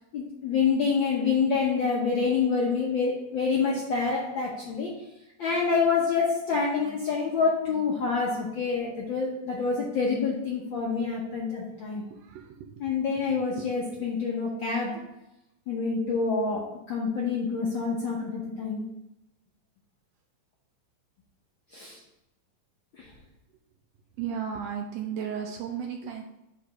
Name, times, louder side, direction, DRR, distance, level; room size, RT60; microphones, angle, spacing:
voice 1, 0.1-4.9 5.4-12.1 12.8-15.0 15.7-18.8 21.7-22.0 23.0-23.1, left 5 dB, 75° left, -3 dB, 1.0 m, -27 dB
voice 2, 24.2-26.2, right 7 dB, 80° right, 2 dB, 1.4 m, -33 dB
4.9 x 4.8 x 5.4 m, 0.91 s
omnidirectional pair, 3.4 m